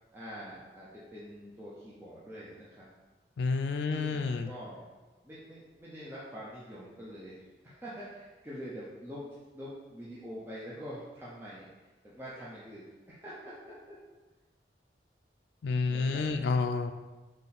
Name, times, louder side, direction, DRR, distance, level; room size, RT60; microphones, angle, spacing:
voice 1, 0.1-2.9 3.9-4.9 5.2-9.2 9.5-11.7 12.0-14.0 15.8-16.3, equal, 15° right, -9 dB, 0.6 m, -45 dB
voice 2, 3.4-4.5 15.6-16.9, left 4 dB, 75° left, 6 dB, 0.3 m, -29 dB
4.1 x 3.2 x 4.1 m, 1.2 s
head